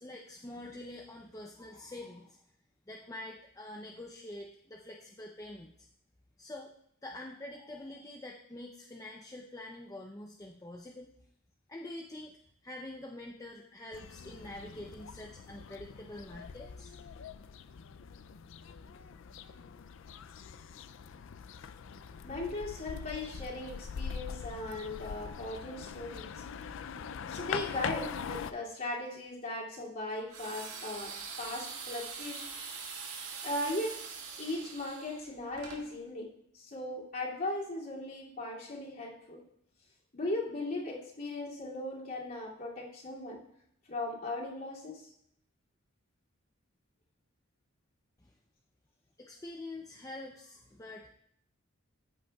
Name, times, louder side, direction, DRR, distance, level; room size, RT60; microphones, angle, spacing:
voice 1, 0.0-2.4 2.9-5.7 6.4-6.7 7.0-11.1 11.7-12.4 12.6-17.0 48.2-48.3 49.2-51.1, left 1 dB, 15° left, -1 dB, 0.5 m, -46 dB
sound 1, 13.9-28.5, left 6 dB, 65° left, 0.4 m, -43 dB
voice 2, 22.2-26.4 27.3-31.1 31.4-32.5 33.4-33.9 34.4-36.3 36.5-39.4 40.1-43.4 43.9-45.1, left 2 dB, 45° left, -5 dB, 2.6 m, -38 dB
sound 2, 30.3-35.8, right 5 dB, 90° right, 1.8 m, -43 dB
14.0 x 8.2 x 2.3 m, 0.70 s
head